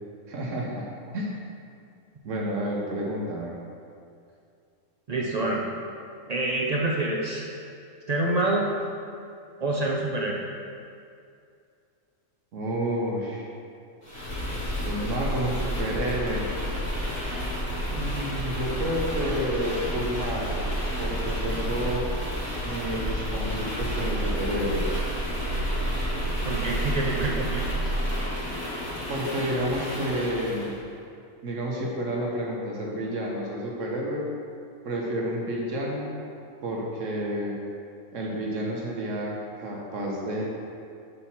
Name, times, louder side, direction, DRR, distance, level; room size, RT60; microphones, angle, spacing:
voice 1, 0.3-0.9 1.1-1.4 2.2-3.5 12.5-13.5 14.8-16.5 17.8-20.6 21.0-22.1 22.6-25.0 29.1-30.7 31.4-34.2 34.8-36.1 36.6-37.6 38.1-40.4, right 1 dB, 75° right, -2 dB, 1.2 m, -30 dB
voice 2, 5.1-5.6 6.3-7.5 8.1-8.7 9.6-10.4 26.4-27.6, right 2 dB, 55° right, -2 dB, 0.4 m, -26 dB
sound 1, 14.0-30.7, equal, 90° left, 2.3 m, -30 dB
5.0 x 4.2 x 5.8 m, 2.4 s
omnidirectional pair, 1.4 m